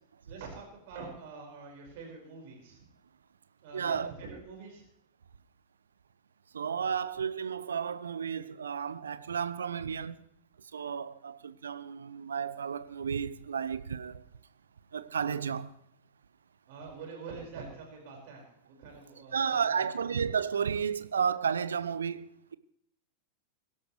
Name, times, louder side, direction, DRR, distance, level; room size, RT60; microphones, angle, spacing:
voice 1, 0.3-2.8 3.6-4.8 16.7-19.8, right 4 dB, 50° right, 5.2 m, -45 dB
voice 2, 3.7-4.1 6.5-10.2 10.7-14.2 14.9-15.7 19.3-22.6, right 7 dB, 70° right, 0.7 m, -32 dB
23.0 x 12.0 x 3.2 m
figure-of-eight pair, 90°, 0 cm